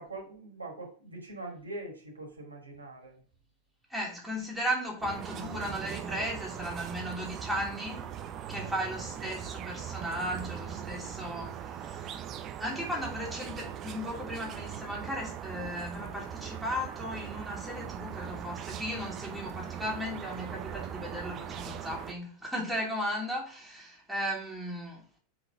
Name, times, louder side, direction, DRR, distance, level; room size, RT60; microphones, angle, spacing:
voice 1, 0.0-3.2, right 2 dB, 80° right, 2.6 m, -43 dB
voice 2, 3.9-8.1 8.5-12.2 12.6-25.0, equal, ahead, 2.6 m, -36 dB
sound 1, 5.0-22.1, right 9 dB, 30° right, 0.7 m, -40 dB
5.5 x 3.9 x 6.0 m
figure-of-eight pair, 90°, 0 cm